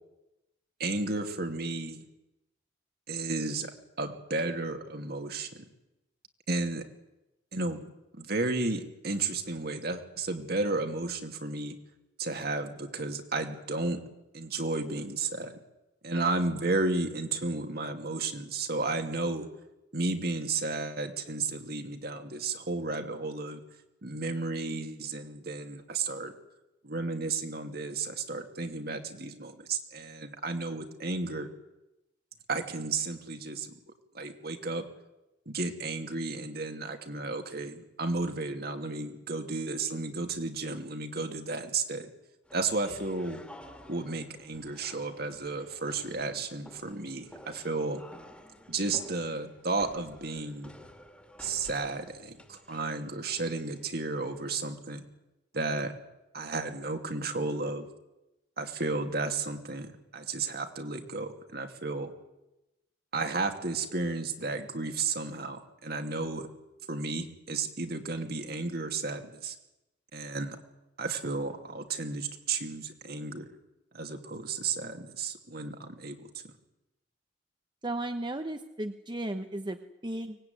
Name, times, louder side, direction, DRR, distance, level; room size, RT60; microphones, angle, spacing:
voice 1, 0.8-2.0 3.1-3.7 4.0-5.6 6.5-6.8 7.5-11.8 12.2-14.0 14.3-15.6 16.0-19.5 19.9-23.6 24.0-26.3 26.8-31.5 32.5-33.8 34.1-34.9 35.5-42.1 42.5-43.4 43.9-48.0 48.7-50.7 51.4-55.0 55.5-55.9 56.3-57.9 58.6-62.1 63.1-66.5 66.9-69.5 70.1-70.6 71.0-73.5 73.9-76.5, right 3 dB, 55° right, 6 dB, 2.6 m, -33 dB
sound 1, 42.5-54.6, left 1 dB, 5° left, 2.3 m, -52 dB
voice 2, 77.8-80.4, right 1 dB, 25° right, 7 dB, 1.0 m, -35 dB
24.0 x 19.0 x 9.5 m, 0.95 s
head